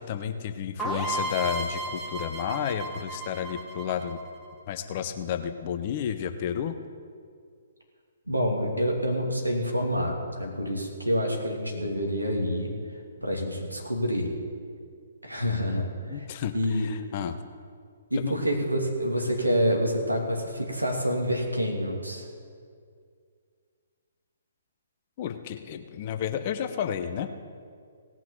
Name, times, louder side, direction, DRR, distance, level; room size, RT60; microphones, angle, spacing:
voice 1, 0.0-4.2 4.7-6.8 16.1-17.4 18.2-18.3 25.2-27.3, left 8 dB, 35° left, 8 dB, 0.8 m, -31 dB
sound 1, 0.8-4.5, right 2 dB, ahead, 1.8 m, -33 dB
voice 2, 8.3-12.7 13.2-14.3 15.2-16.2 16.5-16.9 18.1-22.3, equal, 85° right, 0 dB, 2.7 m, -27 dB
17.5 x 6.1 x 7.3 m, 2.2 s
figure-of-eight pair, 130°, 0 cm